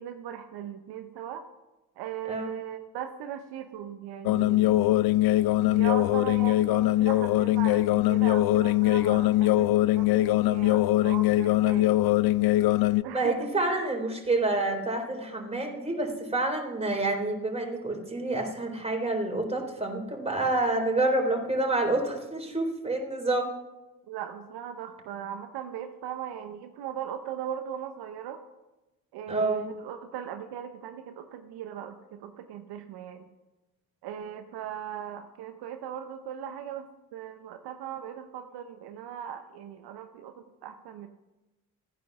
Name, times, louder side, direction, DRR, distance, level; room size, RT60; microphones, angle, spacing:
voice 1, 0.0-1.4 2.0-4.9 5.6-11.9 13.0-13.5 24.1-28.4 29.1-33.3 34.0-41.1, right 9 dB, 65° right, 7 dB, 0.9 m, -38 dB
sound 1, 4.2-13.0, left 16 dB, 60° left, 0.6 m, -22 dB
voice 2, 13.1-23.5 29.3-29.7, right 2 dB, 15° right, 2 dB, 3.7 m, -28 dB
14.0 x 9.4 x 6.1 m, 1.1 s
hypercardioid pair, 45°, 41 cm